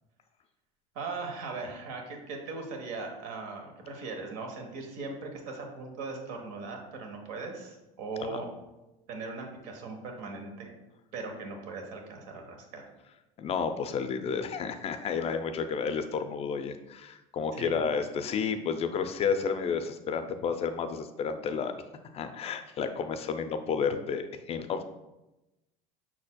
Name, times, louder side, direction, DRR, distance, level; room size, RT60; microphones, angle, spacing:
voice 1, 0.9-8.5 9.1-10.7 11.1-12.8 17.5-17.7, right 3 dB, 75° right, 2 dB, 1.1 m, -39 dB
voice 2, 13.4-21.7 22.1-24.8, left 6 dB, 35° left, 9 dB, 0.4 m, -31 dB
5.9 x 4.1 x 2.2 m, 0.98 s
supercardioid pair, 110°, 17 cm